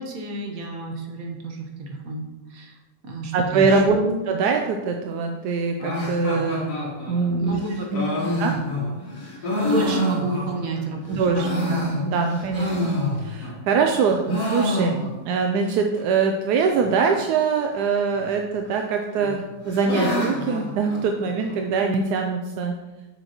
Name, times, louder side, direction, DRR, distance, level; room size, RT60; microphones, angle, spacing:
voice 1, 0.0-2.7 3.0-4.3 7.3-7.8 8.3-8.6 9.4-11.2 11.5-11.8 12.6-12.7, right 2 dB, 60° right, 1 dB, 1.5 m, -31 dB
voice 2, 3.3-4.0 4.3-6.7 7.1-7.6 7.9-8.5 11.1-15.0 15.2-22.7, right 5 dB, 85° right, 3 dB, 1.2 m, -23 dB
sound 1, 5.8-10.8 11.2-13.6 13.8-15.4 15.7-15.8 16.0-16.1 16.7-17.1 18.2-18.8 19.1-21.6, left 1 dB, 70° left, 2.4 m, -27 dB
7.0 x 6.9 x 3.0 m, 1.1 s
omnidirectional pair, 1.7 m